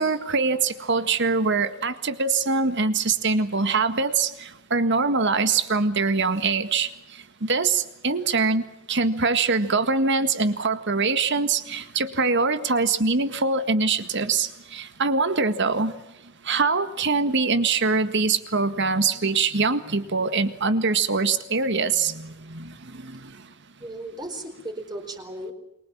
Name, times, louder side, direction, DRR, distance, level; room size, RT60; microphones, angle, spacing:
voice 1, 0.0-6.9 7.4-8.6 8.9-15.9 16.5-23.3, right 4 dB, 60° right, 11 dB, 1.9 m, -23 dB
voice 2, 23.8-25.5, right 1 dB, 20° right, 5 dB, 4.6 m, -36 dB
28.5 x 23.0 x 7.5 m, 0.87 s
head